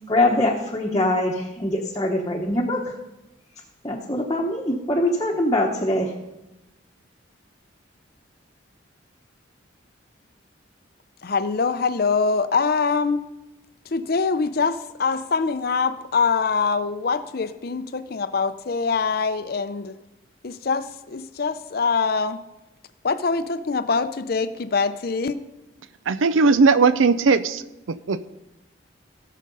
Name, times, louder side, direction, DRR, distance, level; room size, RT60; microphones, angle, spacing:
voice 1, 0.1-2.9 3.8-6.2, left 1 dB, 20° left, -2 dB, 1.0 m, -23 dB
voice 2, 11.2-13.2 13.9-20.0 20.4-22.4 23.0-25.4, left 4 dB, 50° left, 11 dB, 0.5 m, -24 dB
voice 3, 26.1-27.6 27.9-28.2, right 4 dB, 90° right, 14 dB, 0.5 m, -18 dB
17.0 x 6.6 x 5.4 m, 0.96 s
head